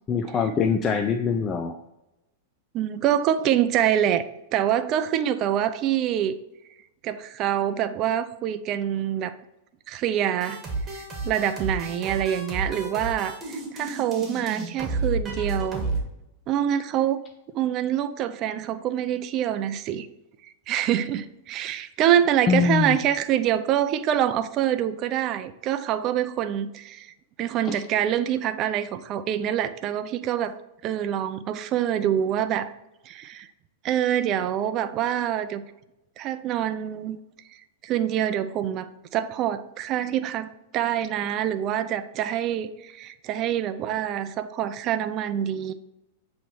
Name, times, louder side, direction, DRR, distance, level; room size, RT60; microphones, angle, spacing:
voice 1, 0.1-1.8 22.5-23.0 27.6-27.8, left 6 dB, 25° left, 6 dB, 0.4 m, -23 dB
voice 2, 2.7-4.3 4.5-6.4 7.0-9.4 9.9-10.6 10.9-15.9 16.5-17.2 17.5-20.1 20.7-27.1 27.4-30.5 30.8-32.7 33.1-33.5 33.8-35.6 36.2-37.2 37.8-45.7, right 10 dB, 40° right, 12 dB, 0.5 m, -25 dB
sound 1, 10.4-16.0, right 3 dB, 20° right, 1.8 m, -31 dB
8.0 x 3.1 x 4.6 m, 0.93 s
figure-of-eight pair, 100°, 0 cm